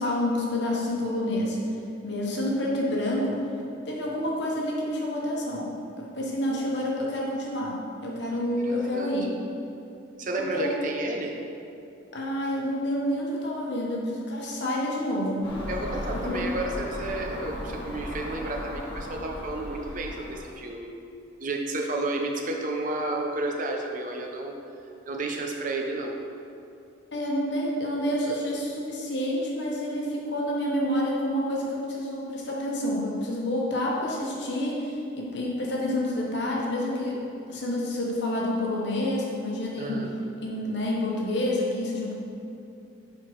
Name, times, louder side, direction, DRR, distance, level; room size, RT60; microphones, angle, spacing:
voice 1, 0.0-1.6 2.0-3.4 3.8-5.7 6.0-7.8 8.0-9.3 10.5-10.8 12.1-15.4 16.1-16.4 27.1-37.2 37.5-40.0 40.4-42.1, left 1 dB, 55° left, -3 dB, 1.0 m, -28 dB
voice 2, 8.6-9.2 10.2-11.4 15.7-20.9 21.4-24.5 25.1-26.2 39.8-40.1, right 2 dB, 40° right, 1 dB, 0.5 m, -31 dB
Car passing by / Engine, 15.4-20.4, left 1 dB, 25° left, 1.2 m, -36 dB
4.5 x 4.4 x 4.6 m, 2.7 s
head